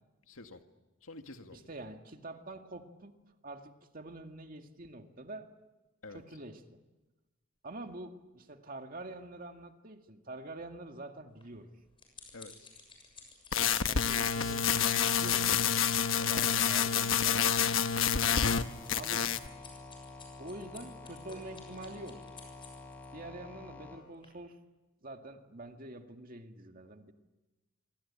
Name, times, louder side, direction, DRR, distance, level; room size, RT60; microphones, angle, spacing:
voice 1, 0.3-0.6 1.0-1.7 6.0-6.2 12.3-12.7 16.2-16.4, left 2 dB, 90° left, 6 dB, 2.1 m, -48 dB
voice 2, 1.5-3.2 3.4-5.5 6.1-6.8 7.6-11.7 13.5-15.9 16.1-17.9 18.9-19.3 20.4-22.3 23.1-24.6 25.0-27.1, right 2 dB, 45° right, 5 dB, 2.1 m, -46 dB
sound 1, 11.4-23.1 23.7-23.9 24.2-24.3, left 5 dB, 25° left, 7.1 m, -53 dB
sound 2, 13.5-18.6 18.9-19.5, left 7 dB, 70° left, 1.1 m, -28 dB
sound 3, 18.2-24.0, left 3 dB, 10° left, 5.3 m, -49 dB
26.5 x 25.0 x 8.8 m, 1.1 s
head